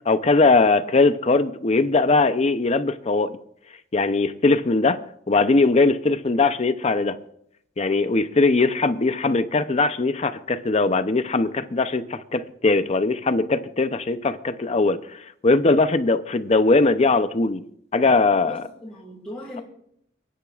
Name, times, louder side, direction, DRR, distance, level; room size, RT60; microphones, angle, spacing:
voice 1, 0.1-3.4 3.9-5.0 5.3-7.2 7.8-17.6 17.9-18.6, left 3 dB, 35° left, 11 dB, 0.6 m, -20 dB
voice 2, 18.4-19.6, left 1 dB, 5° left, -7 dB, 2.4 m, -38 dB
29.5 x 10.0 x 2.4 m, 0.71 s
head